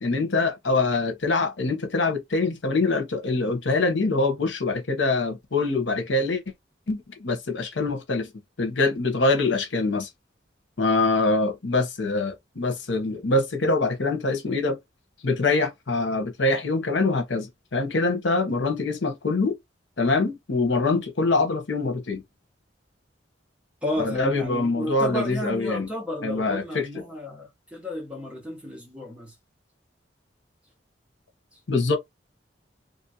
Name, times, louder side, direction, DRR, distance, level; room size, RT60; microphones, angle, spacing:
voice 1, 0.0-6.4 6.9-8.3 8.6-10.1 10.8-14.8 15.2-19.6 20.0-22.2 24.0-25.9 26.2-27.0 31.7-32.0, left 3 dB, 85° left, 0.9 m, -24 dB
voice 2, 23.8-29.3, left 1 dB, 5° right, 1.1 m, -32 dB
2.9 x 2.5 x 2.7 m
head